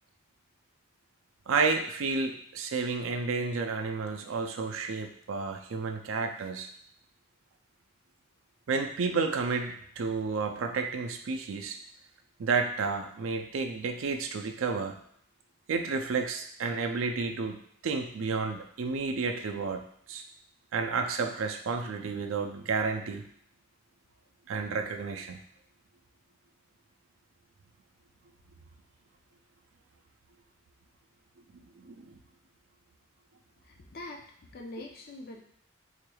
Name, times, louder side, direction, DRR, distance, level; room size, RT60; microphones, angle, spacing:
voice 1, 1.5-6.7 8.7-11.8 12.4-15.0 15.7-19.8 20.1-20.2 20.7-23.2 24.5-25.4 31.8-32.2, right 4 dB, 75° right, 4 dB, 0.4 m, -31 dB
voice 2, 33.6-34.2 34.5-35.4, left 2 dB, 45° left, 2 dB, 0.5 m, -43 dB
3.9 x 3.1 x 2.3 m, 0.67 s
head